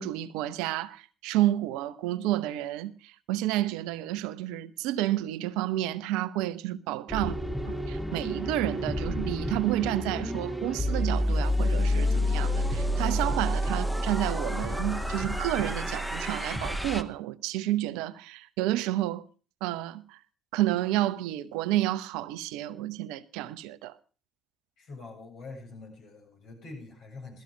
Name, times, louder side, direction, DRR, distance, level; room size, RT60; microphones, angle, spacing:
voice 1, 0.0-7.4 7.7-19.2 19.6-20.2 20.5-23.9, right 14 dB, 75° right, 0.8 m, -30 dB
sound 1, 7.1-17.0, left 1 dB, ahead, 1.6 m, -29 dB
voice 2, 24.8-27.4, left 3 dB, 70° left, 7.9 m, -45 dB
16.5 x 14.0 x 5.1 m
hypercardioid pair, 50°, 0 cm